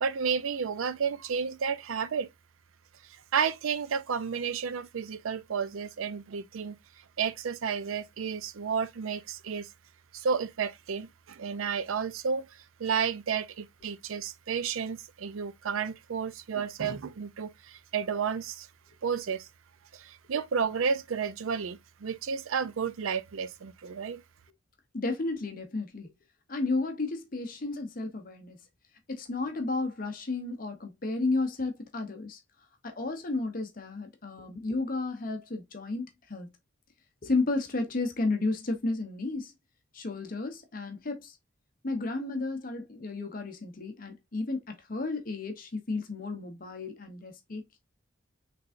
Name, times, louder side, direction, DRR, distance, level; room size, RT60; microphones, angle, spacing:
voice 1, 0.0-2.3 3.3-6.8 7.2-9.7 10.1-12.5 12.8-18.7 19.0-19.5 19.9-24.2, right 6 dB, 80° right, 0.5 m, -31 dB
voice 2, 24.9-26.1 26.5-28.6 29.1-32.4 32.8-36.5 37.2-39.5 39.9-41.4 41.8-47.6, left 3 dB, 40° left, 0.7 m, -32 dB
5.9 x 3.4 x 2.5 m
head